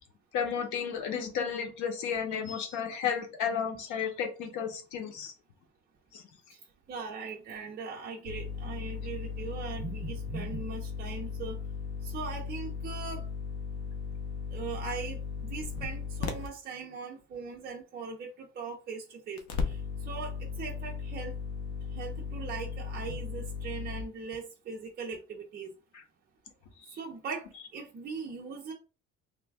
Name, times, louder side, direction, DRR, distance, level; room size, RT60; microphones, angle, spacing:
voice 1, 0.3-5.3 6.1-6.2, left 7 dB, 85° left, 0.9 m, -33 dB
voice 2, 6.9-11.6 12.0-13.2 14.5-19.8 20.1-21.3 21.9-25.7 26.9-27.4 27.7-28.7, right 5 dB, 35° right, 0.5 m, -40 dB
sound 1, 8.3-16.5 19.4-24.0, left 5 dB, 60° left, 0.7 m, -37 dB
3.2 x 2.2 x 3.3 m
cardioid pair, 165°, 29 cm